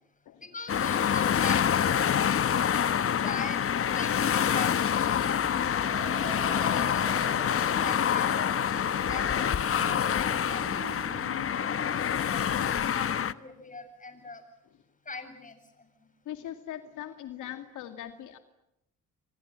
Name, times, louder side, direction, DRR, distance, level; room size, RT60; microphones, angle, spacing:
voice 1, 0.4-1.6 2.1-3.6 3.9-4.8 5.0-5.2 6.3-9.3 9.6-10.9 12.3-14.4 15.1-15.6, left 3 dB, 25° left, 9 dB, 7.5 m, -42 dB
sound 1, 0.7-13.3, left 8 dB, 50° left, 1.2 m, -26 dB
sound 2, 5.8-11.5, right 2 dB, 75° right, 7.5 m, -42 dB
voice 2, 11.3-11.9 12.1-13.3 16.2-18.4, left 11 dB, 80° left, 7 dB, 2.4 m, -42 dB
29.0 x 25.5 x 7.6 m, 0.81 s
cardioid pair, 90°, 30 cm